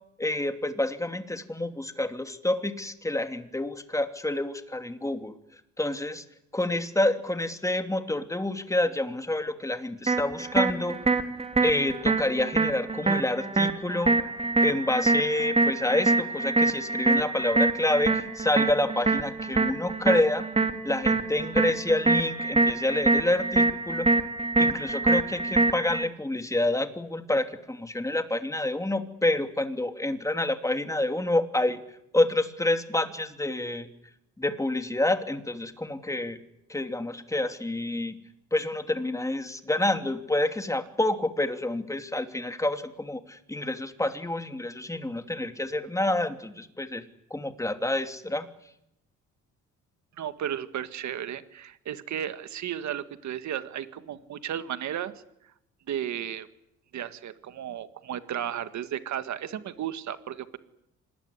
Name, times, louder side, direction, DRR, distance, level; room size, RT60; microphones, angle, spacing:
voice 1, 0.2-5.3 5.8-6.2 6.5-11.0 11.6-14.2 14.6-20.5 20.8-24.1 24.6-31.8 32.1-33.9 34.4-36.4 36.7-38.2 38.5-47.0 47.3-48.5, left 1 dB, 10° left, 8 dB, 2.8 m, -28 dB
sound 1, 10.1-26.1, right 3 dB, 20° right, 2.3 m, -25 dB
voice 2, 50.2-55.1 55.9-56.5 56.9-60.6, right 10 dB, 70° right, 11 dB, 1.9 m, -34 dB
26.0 x 20.5 x 9.8 m, 0.81 s
cardioid pair, 90°, 30 cm